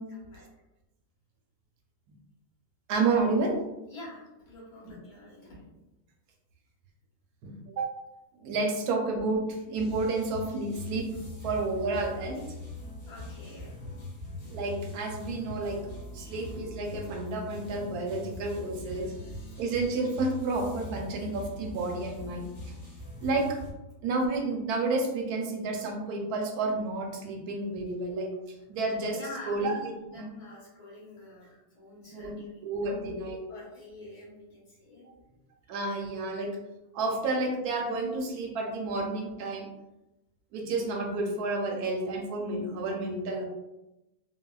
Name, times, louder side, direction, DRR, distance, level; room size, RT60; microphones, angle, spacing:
voice 1, 0.1-0.5 3.9-5.6 13.1-13.8 16.2-16.4 18.8-19.6 29.1-33.2 33.5-35.1, left 1 dB, 70° left, -6 dB, 1.6 m, -47 dB
voice 2, 2.9-3.6 7.4-7.9 8.4-11.1 11.4-12.4 14.5-15.8 16.1-19.1 19.6-22.5 23.2-23.6 24.0-28.3 28.7-29.2 29.5-29.8 30.1-30.2 32.1-32.3 32.6-33.4 35.7-36.6 36.9-39.7 40.5-43.4, right 3 dB, 80° right, 2 dB, 1.1 m, -30 dB
sound 1, 9.7-23.7, left 2 dB, 45° left, 0.9 m, -42 dB
3.4 x 2.1 x 2.3 m, 0.97 s
omnidirectional pair, 1.7 m